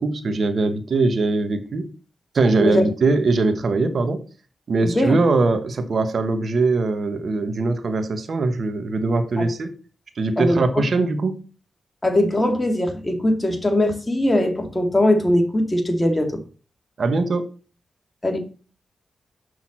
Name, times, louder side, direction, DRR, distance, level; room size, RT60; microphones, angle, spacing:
voice 1, 0.0-1.9 2.3-4.2 4.7-9.7 10.2-11.4 17.0-17.4, right 3 dB, 65° right, 8 dB, 1.1 m, -21 dB
voice 2, 4.8-5.2 9.4-9.5 10.4-10.6 12.0-16.4 18.2-18.4, left 1 dB, 20° left, 4 dB, 2.5 m, -20 dB
6.4 x 5.8 x 7.3 m, 0.38 s
cardioid pair, 55°, 0 cm